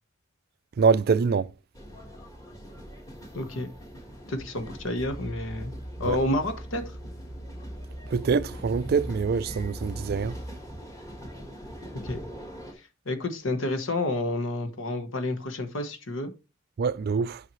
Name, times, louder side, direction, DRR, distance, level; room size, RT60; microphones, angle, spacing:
voice 1, 0.8-1.5 6.1-6.2 8.1-10.3 16.8-17.4, right 5 dB, 50° right, 0.3 m, -24 dB
sound 1, 1.7-12.7, equal, 15° left, 1.7 m, -43 dB
voice 2, 3.3-3.7 4.3-5.7 6.0-6.9 12.0-12.2 13.1-16.3, left 2 dB, 70° left, 1.2 m, -29 dB
sound 2, 5.0-10.6, equal, 50° left, 1.1 m, -40 dB
9.1 x 5.7 x 3.1 m
head